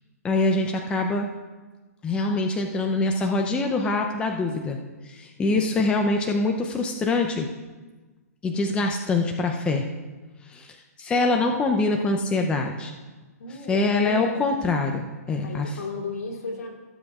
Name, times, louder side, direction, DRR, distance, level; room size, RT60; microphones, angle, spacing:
voice 1, 0.2-1.3 2.0-4.8 5.0-7.5 8.4-9.8 10.5-12.9 13.7-15.7, left 3 dB, 10° left, 3 dB, 0.6 m, -24 dB
voice 2, 5.5-5.8 13.4-14.4 15.4-16.7, left 3 dB, 70° left, -2 dB, 3.0 m, -34 dB
18.5 x 7.5 x 2.4 m, 1.3 s
hypercardioid pair, 140°, 9 cm